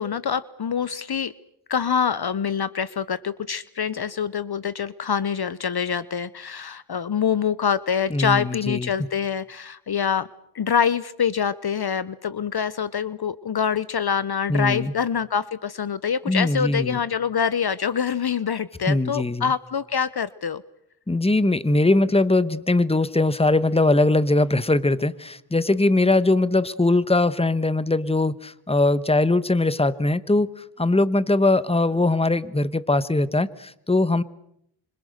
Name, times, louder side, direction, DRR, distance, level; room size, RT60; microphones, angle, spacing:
voice 1, 0.0-1.3 1.7-10.3 10.5-20.6, left 7 dB, 50° left, 17 dB, 0.9 m, -25 dB
voice 2, 8.1-8.9 14.5-14.9 16.3-17.0 18.9-19.5 21.1-34.2, left 2 dB, 10° left, 16 dB, 1.2 m, -21 dB
26.0 x 26.0 x 6.5 m, 0.74 s
cardioid pair, 65°, 48 cm